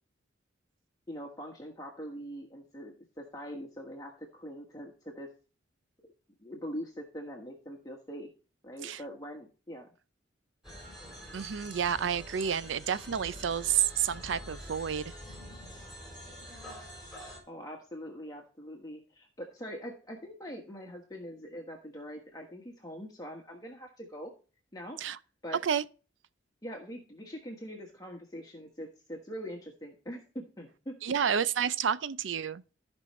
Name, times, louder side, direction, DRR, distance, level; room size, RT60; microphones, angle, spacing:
voice 1, 1.1-5.3 6.4-8.3 8.6-9.9 17.5-24.3 24.7-25.0 25.4-25.6 26.6-31.0, equal, 20° left, 1.3 m, -43 dB
sound 1, 10.6-17.4, equal, ahead, 4.0 m, -46 dB
voice 2, 11.3-15.1 25.0-25.2 25.6-25.8 31.0-32.6, right 8 dB, 75° right, 0.5 m, -30 dB
15.0 x 5.4 x 3.1 m
head